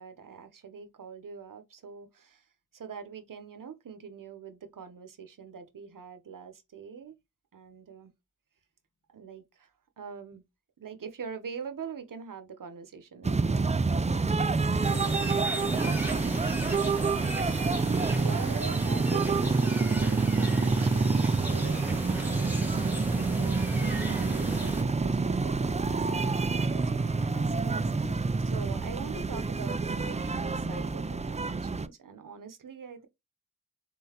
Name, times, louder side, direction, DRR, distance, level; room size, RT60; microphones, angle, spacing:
voice 1, 0.0-2.4 2.7-7.2 7.5-8.1 9.1-9.7 10.0-10.4 10.8-13.7 18.1-27.9 28.5-33.1, right 6 dB, 85° right, 0.8 m, -43 dB
sound 1, 13.2-31.9, right 4 dB, 20° right, 0.4 m, -27 dB
voice 2, 14.2-16.8 24.0-24.3 27.6-28.2, left 2 dB, 75° left, 1.0 m, -48 dB
sound 2, 14.8-24.8, right 1 dB, 5° right, 1.5 m, -37 dB
sound 3, 21.6-27.6, equal, 20° left, 2.2 m, -50 dB
3.8 x 3.8 x 2.8 m
cardioid pair, 45°, 32 cm